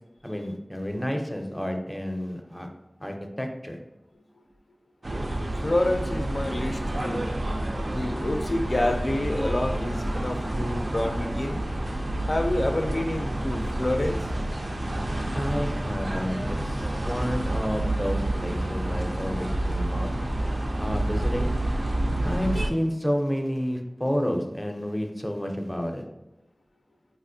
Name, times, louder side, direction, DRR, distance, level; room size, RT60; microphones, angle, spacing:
voice 1, 0.2-2.7 3.0-3.8 15.3-20.1 20.8-21.5 22.2-26.1, equal, 10° left, 3 dB, 0.5 m, -30 dB
sound 1, 5.0-22.7, right 1 dB, 80° right, 0.4 m, -29 dB
voice 2, 5.6-7.3 7.9-11.6 12.3-14.3, left 1 dB, 70° left, 4 dB, 0.4 m, -28 dB
4.0 x 2.4 x 2.6 m, 0.95 s
wide cardioid pair, 45°, 0 cm